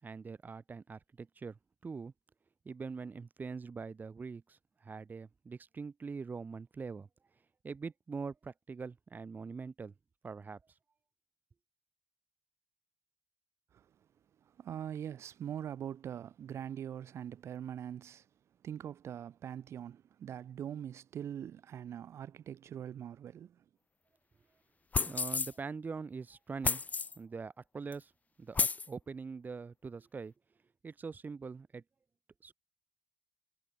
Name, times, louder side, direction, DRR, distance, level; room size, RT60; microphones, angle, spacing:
voice 1, 0.0-2.1 2.6-7.1 7.6-9.9 10.2-10.6 25.0-26.8 27.2-28.1 28.4-30.3 30.8-31.8 32.4-32.5, right 5 dB, 40° right, 6.1 m, -43 dB
voice 2, 14.4-18.3 18.6-23.6, right 9 dB, 90° right, 6.9 m, -43 dB
sound 1, 24.9-25.5 26.6-27.2 27.9-28.0 28.5-28.9, left 4 dB, 35° left, 0.7 m, -31 dB
cardioid pair, 105°, 5 cm